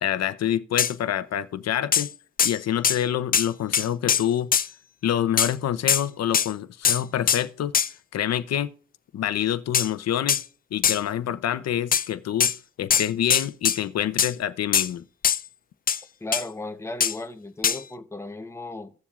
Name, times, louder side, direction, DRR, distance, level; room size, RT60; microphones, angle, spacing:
voice 1, 0.0-2.1 2.4-4.5 5.0-7.7 8.1-8.7 9.1-10.4 10.7-12.5 12.8-15.0, left 10 dB, 55° left, 0.7 m, -26 dB
sound 1, 0.8-0.9 1.9-2.1 2.4-2.6 2.8-3.0 3.3-3.5 3.7-4.7 5.4-5.5 5.9-6.0 6.3-6.5 6.8-7.0 7.3-7.4 7.7-7.9 9.7-9.9 10.3-10.4 10.8-11.0 11.9-12.1 12.4-12.6 12.9-13.8 14.2-14.3 14.7-14.9 15.2-15.4 15.9-16.0 16.3-16.4 17.0-17.2 17.6-17.8, left 7 dB, 30° left, 0.5 m, -21 dB
voice 2, 16.2-18.9, left 2 dB, 10° left, 0.9 m, -35 dB
17.0 x 7.1 x 2.4 m
cardioid pair, 90°, 30 cm